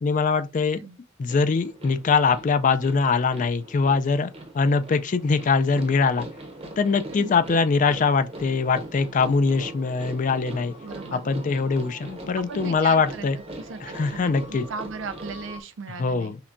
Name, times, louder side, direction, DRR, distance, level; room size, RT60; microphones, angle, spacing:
voice 1, 0.0-0.8 1.2-6.3 6.8-10.7 11.1-13.4 13.8-14.6 16.0-16.4, left 4 dB, 40° left, 0.3 m, -22 dB
voice 2, 0.6-1.0 7.1-7.3 10.8-11.3 12.4-13.3 13.5-16.4, right 5 dB, 70° right, 0.4 m, -37 dB
sound 1, 1.3-15.6, right 1 dB, 30° right, 0.7 m, -41 dB
5.7 x 2.2 x 2.5 m
head